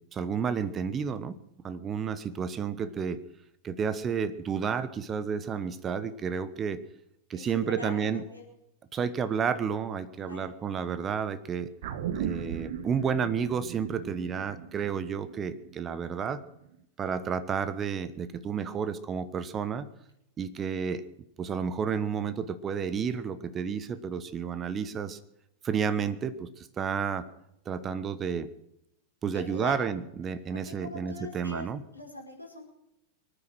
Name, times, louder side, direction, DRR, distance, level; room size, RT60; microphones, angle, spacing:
voice 1, 0.0-1.4 1.6-3.2 3.6-6.8 7.3-8.2 8.9-11.7 12.1-16.4 17.0-19.9 20.4-21.0 21.4-25.2 25.6-27.3 27.6-28.5 29.2-31.8, right 6 dB, 25° right, 14 dB, 1.2 m, -31 dB
voice 2, 7.3-8.4 10.2-10.5 29.2-29.8 30.5-31.7 31.9-32.7, left 2 dB, 85° left, -2 dB, 5.0 m, -42 dB
sound 1, 11.8-16.4 16.7-16.8, right 8 dB, 55° right, 1.3 m, -38 dB
24.0 x 9.7 x 6.2 m, 0.81 s
figure-of-eight pair, 90°, 0 cm